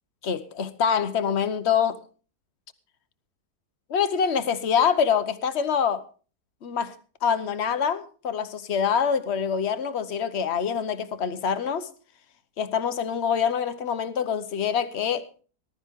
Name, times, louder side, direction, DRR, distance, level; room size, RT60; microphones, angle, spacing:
voice 1, 0.2-2.0 3.9-6.0 6.6-6.9 7.2-11.9 12.6-15.3, left 7 dB, 45° left, 1.2 m, -25 dB
19.5 x 12.0 x 3.6 m
omnidirectional pair, 1.7 m